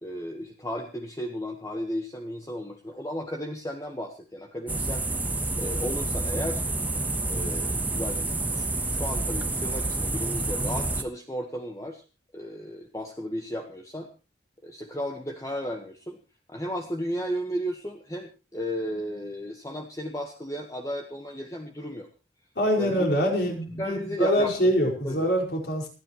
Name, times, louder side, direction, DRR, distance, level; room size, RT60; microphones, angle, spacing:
voice 1, 0.0-6.6 7.3-12.0 12.3-14.1 14.6-16.2 16.5-22.1 22.8-23.1 23.8-24.5 24.8-25.3, equal, 20° left, 3 dB, 1.4 m, -34 dB
sound 1, 4.7-11.0, right 2 dB, 10° right, 1.1 m, -28 dB
voice 2, 22.6-25.9, equal, 60° left, 1 dB, 5.5 m, -24 dB
28.5 x 10.0 x 3.1 m, 0.32 s
head